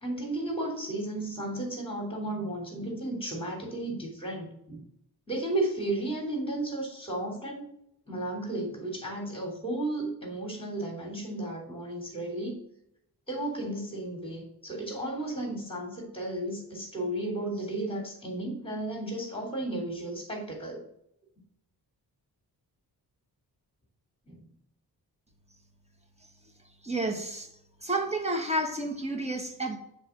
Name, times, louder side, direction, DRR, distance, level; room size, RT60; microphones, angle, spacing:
voice 1, 0.0-4.8 5.3-7.6 8.1-12.6 13.3-20.8 24.3-24.5, right 1 dB, 15° left, 2.9 m, -34 dB
voice 2, 26.8-27.5 27.8-29.8, right 1 dB, 15° right, 1.4 m, -30 dB
7.3 x 3.4 x 5.9 m
cardioid pair, 70°, 40 cm